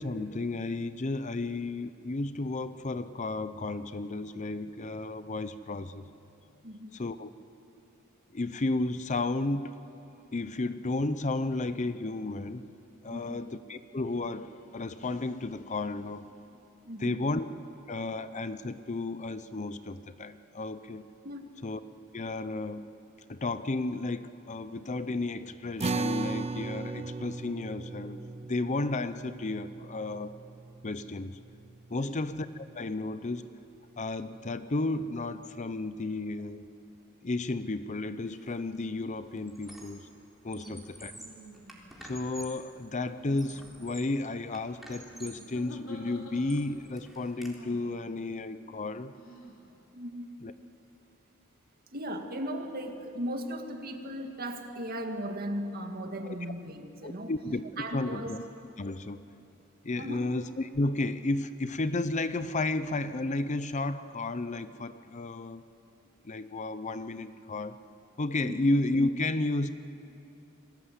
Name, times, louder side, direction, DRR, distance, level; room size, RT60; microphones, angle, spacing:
voice 1, 0.0-6.0 6.9-7.3 8.3-9.8 10.3-12.6 13.0-16.3 17.0-17.5 17.9-21.1 21.6-21.8 22.1-22.9 23.3-30.3 30.8-31.4 31.9-33.5 34.0-36.7 37.2-40.1 40.4-41.1 42.0-49.1 50.4-50.5 56.3-56.4 57.0-57.6 57.9-58.4 58.8-59.2 59.8-65.6 66.2-67.8 68.2-69.7, left 2 dB, 35° left, 12 dB, 0.7 m, -33 dB
voice 2, 13.1-13.4 16.9-17.2 21.2-21.5 31.9-32.2 40.5-40.8 49.9-50.3 51.9-57.3 57.8-58.3 60.0-60.3 68.4-68.6, equal, 50° right, 4 dB, 2.2 m, -37 dB
sound 1, 25.8-32.4, right 3 dB, 30° right, 0.7 m, -37 dB
Squeak, 38.3-38.6 38.9-40.1 40.4-42.7 43.2-44.2 44.5-45.5 46.0-47.5, right 1 dB, ahead, 3.8 m, -50 dB
sound 2, 39.6-39.8 41.1-42.0 43.1-43.7 45.1-46.8 47.5-48.0 49.1-49.6, equal, 70° left, 3.9 m, -49 dB
28.5 x 21.0 x 8.3 m, 3.0 s
head